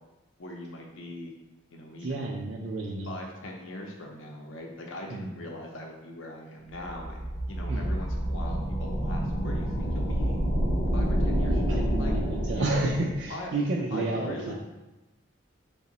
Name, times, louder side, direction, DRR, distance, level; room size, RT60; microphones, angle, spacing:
voice 1, 0.4-1.3 1.7-2.2 3.1-10.4 10.9-12.1 12.5-12.9 13.3-13.5 13.9-14.5, left 1 dB, 70° left, 0 dB, 0.5 m, -40 dB
voice 2, 2.0-3.1 5.1-5.3 7.7-7.9 11.3-14.5, right 2 dB, 60° right, -2 dB, 0.3 m, -31 dB
sound 1, 6.8-13.3, equal, 30° left, 0.6 m, -28 dB
3.6 x 2.0 x 3.9 m, 1.0 s
head